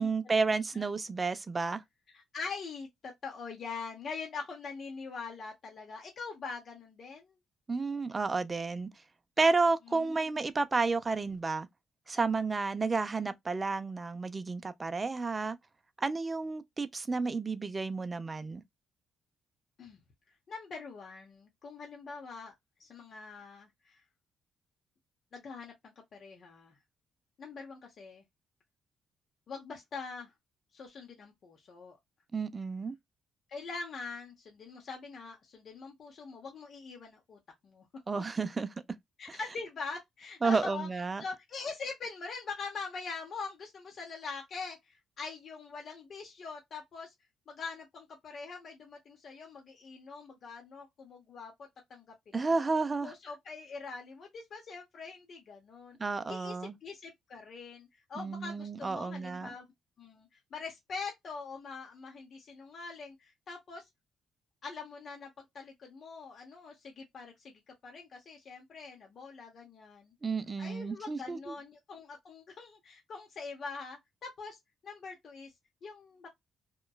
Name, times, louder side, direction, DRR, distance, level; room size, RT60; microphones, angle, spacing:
voice 1, 0.0-1.8 7.7-8.9 9.4-11.7 12.1-15.6 16.0-18.6 32.3-33.0 38.1-38.7 39.3-39.4 40.4-41.2 52.3-53.1 56.0-56.8 58.2-59.5 70.2-71.5, right 4 dB, 25° right, 0.4 m, -31 dB
voice 2, 2.1-7.4 9.9-10.3 19.8-20.0 20.5-22.5 22.8-24.0 25.3-26.8 27.4-28.2 29.5-30.3 30.7-32.0 33.5-37.9 39.2-40.9 41.2-47.1 47.5-51.5 51.9-52.7 53.0-56.0 56.3-56.6 56.8-59.7 60.0-63.9 64.6-70.1 70.6-74.6 74.8-75.5 75.8-76.3, left 4 dB, 55° left, 0.8 m, -43 dB
2.9 x 2.2 x 2.2 m
cardioid pair, 90°, 0 cm